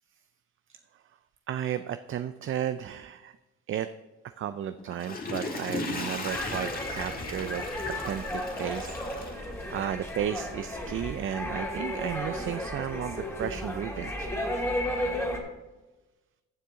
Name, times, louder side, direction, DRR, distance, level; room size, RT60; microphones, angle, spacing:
voice 1, 1.5-3.4 3.7-3.9 4.4-7.6 8.0-14.3, right 10 dB, 45° right, 11 dB, 0.4 m, -34 dB
Water / Toilet flush, 4.8-10.1 10.5-10.6, left 3 dB, 30° left, 1.7 m, -37 dB
sound 1, 6.3-15.4, left 1 dB, 10° left, 2.4 m, -34 dB
14.5 x 6.7 x 3.7 m, 1.1 s
cardioid pair, 90°, 30 cm